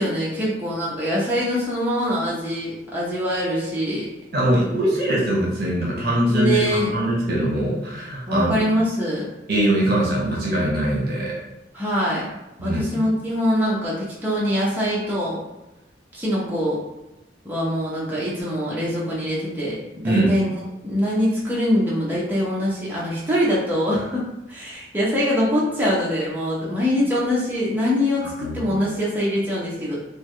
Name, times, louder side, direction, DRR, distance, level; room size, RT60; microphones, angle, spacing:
voice 1, 0.0-4.1 6.3-6.9 8.3-9.2 11.7-12.3 12.6-15.4 16.1-16.8 17.4-20.5 20.8-30.0, equal, 10° right, -7 dB, 0.7 m, -23 dB
voice 2, 4.3-8.5 9.5-11.4 12.6-12.8 20.0-20.3 28.4-28.6, right 1 dB, 60° right, -4 dB, 1.0 m, -22 dB
3.3 x 2.2 x 3.2 m, 0.97 s
head